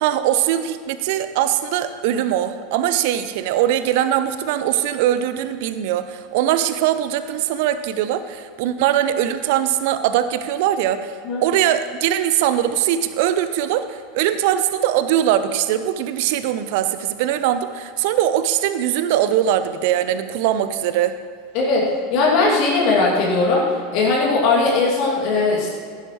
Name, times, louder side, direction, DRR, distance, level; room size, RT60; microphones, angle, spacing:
voice 1, 0.0-21.1, right 11 dB, 55° right, 11 dB, 0.7 m, -21 dB
voice 2, 21.5-23.7 23.9-25.7, left 3 dB, 45° left, -3 dB, 2.4 m, -18 dB
15.5 x 11.5 x 3.1 m, 2.1 s
figure-of-eight pair, 80°, 0 cm